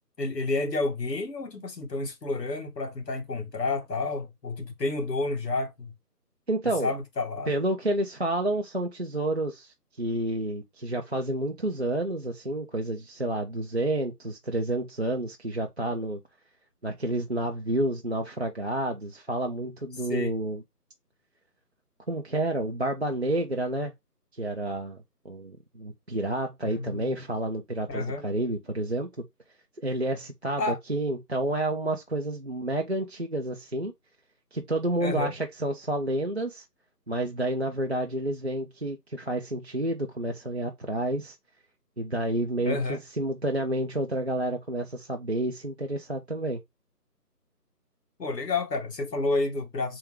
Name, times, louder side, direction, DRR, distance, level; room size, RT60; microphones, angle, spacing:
voice 1, 0.2-5.9 6.8-7.5 20.1-20.3 26.6-27.1 27.9-28.2 30.6-30.8 35.0-35.3 42.6-43.0 48.2-50.0, left 3 dB, 85° left, 1.8 m, -30 dB
voice 2, 6.5-6.9 7.5-16.2 16.8-20.6 22.1-23.9 24.3-25.0 25.2-29.1 29.8-33.9 34.5-36.6 37.1-41.4 42.0-46.6, right 1 dB, 45° right, 0.5 m, -29 dB
3.5 x 3.4 x 3.0 m
figure-of-eight pair, 170°, 48 cm